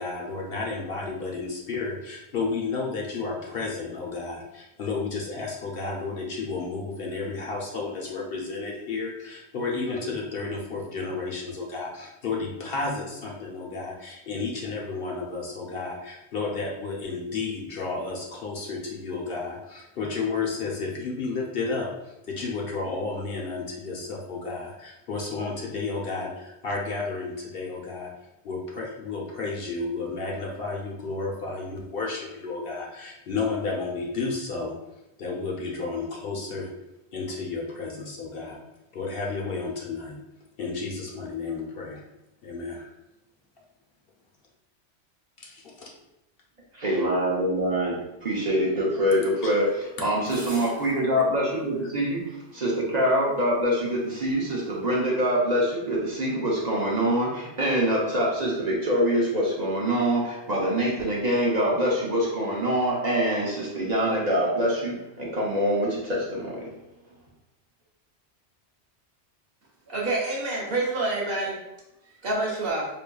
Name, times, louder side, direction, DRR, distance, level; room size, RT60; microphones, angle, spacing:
voice 1, 0.0-28.1 28.4-34.8 35.2-36.7 37.1-38.6 38.9-40.2 40.6-42.0 42.4-42.9 45.4-45.9 49.4-49.5 50.0-50.1, left 4 dB, 60° left, -2 dB, 0.9 m, -32 dB
voice 2, 46.7-66.7, equal, 45° right, -5 dB, 0.8 m, -25 dB
sound 1, 49.7-49.8 50.2-51.0 51.5-51.6 52.7-52.8, equal, 10° right, 0.6 m, -43 dB
voice 3, 69.9-71.6 72.2-72.9, right 2 dB, 60° right, -3 dB, 1.1 m, -27 dB
4.8 x 2.6 x 2.2 m, 0.92 s
omnidirectional pair, 1.2 m